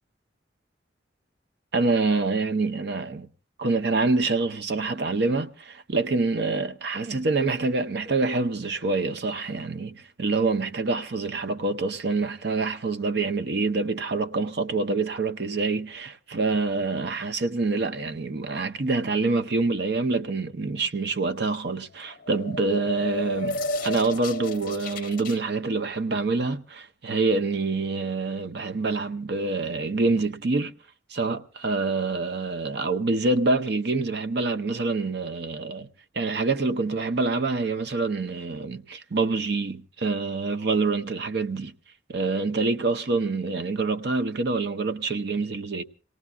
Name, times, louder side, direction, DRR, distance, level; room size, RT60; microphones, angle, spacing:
voice 1, 1.7-3.3 3.6-30.7 31.1-35.9 36.1-41.7 42.1-45.8, right 3 dB, 60° right, 0.7 m, -26 dB
sound 1, 22.1-25.4, left 1 dB, 50° left, 0.7 m, -32 dB
27.5 x 18.0 x 2.4 m
head